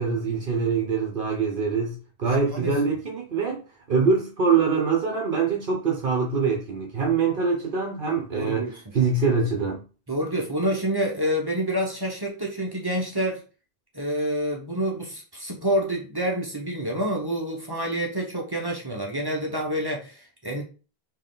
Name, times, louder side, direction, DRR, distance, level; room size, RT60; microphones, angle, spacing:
voice 1, 0.0-3.6 3.9-8.7 8.9-9.8, right 5 dB, 55° right, 0.9 m, -24 dB
voice 2, 8.3-8.8 10.1-13.4 13.9-20.6, equal, 25° right, 1.0 m, -28 dB
4.6 x 3.0 x 3.8 m
omnidirectional pair, 1.1 m